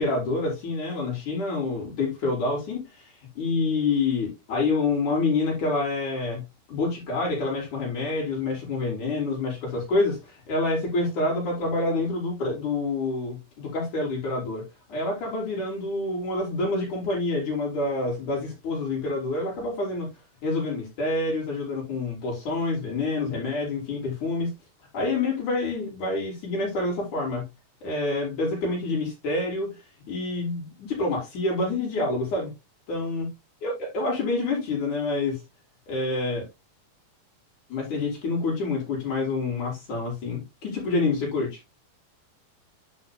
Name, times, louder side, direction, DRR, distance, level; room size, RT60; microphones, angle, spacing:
voice 1, 0.0-6.4 6.7-14.6 14.9-20.1 20.4-24.5 24.9-27.4 27.8-29.7 30.1-32.5 32.9-33.3 33.6-35.4 35.9-36.5 37.7-41.5, left 3 dB, 60° left, 6.8 m, -27 dB
11.5 x 7.4 x 2.2 m
omnidirectional pair, 4.0 m